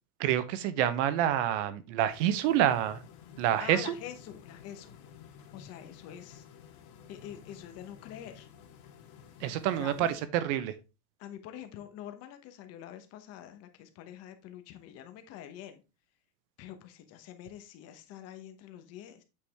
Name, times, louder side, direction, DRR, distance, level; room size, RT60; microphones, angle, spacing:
voice 1, 0.2-3.0 3.4-3.9 9.4-10.7, right 11 dB, 50° right, 0.9 m, -27 dB
sound 1, 2.1-10.2, left 7 dB, 50° left, 1.8 m, -53 dB
voice 2, 3.6-4.9 5.5-6.4 7.1-8.5 9.8-10.2 11.2-15.8 16.6-19.2, left 10 dB, 30° left, 1.0 m, -46 dB
8.6 x 4.8 x 3.5 m
supercardioid pair, 165°, 47 cm